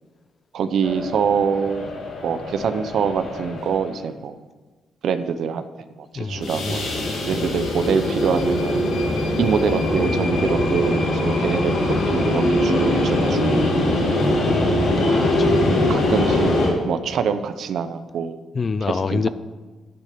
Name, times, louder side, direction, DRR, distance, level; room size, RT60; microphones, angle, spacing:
voice 1, 0.5-1.9 2.2-4.4 5.0-5.6 6.1-8.8 9.4-13.7 15.2-15.6 15.9-18.4 18.9-19.2, right 6 dB, 65° right, 0.7 m, -25 dB
sound 1, 0.8-4.0 6.3-16.7, left 1 dB, 65° left, 3.2 m, -22 dB
voice 2, 6.1-7.2 12.0-12.3 14.4-15.7 18.5-19.3, left 4 dB, 35° left, 0.4 m, -27 dB
9.8 x 6.6 x 6.8 m
cardioid pair, 90°, 0 cm